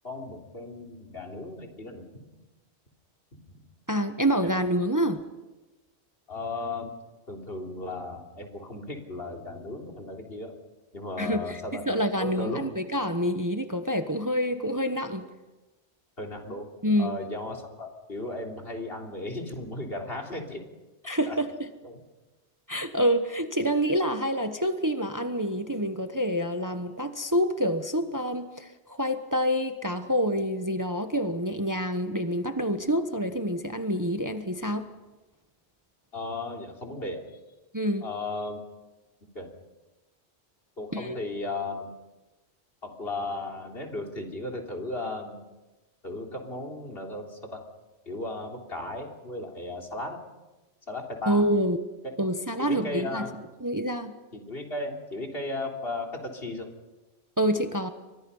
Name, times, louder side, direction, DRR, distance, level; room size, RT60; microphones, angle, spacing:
voice 1, 0.0-2.2 3.3-3.6 4.4-4.5 6.3-6.9 7.3-10.5 10.9-11.8 12.2-12.6 16.2-16.7 17.0-20.6 21.0-21.4 21.8-22.0 36.1-37.2 38.0-38.6 39.4-39.5 40.8-41.9 42.8-45.4 46.0-47.6 48.1-50.2 50.9-51.4 52.6-53.4 54.3-56.7, left 2 dB, 60° left, 1 dB, 3.7 m, -35 dB
voice 2, 3.9-5.2 11.2-11.6 11.9-15.2 16.8-17.2 21.0-21.5 22.7-34.9 37.7-38.1 40.9-41.1 51.3-51.8 52.2-53.2 53.6-54.1 57.4-57.9, equal, 15° right, 7 dB, 1.2 m, -27 dB
29.5 x 24.5 x 5.6 m, 1.1 s
omnidirectional pair, 1.1 m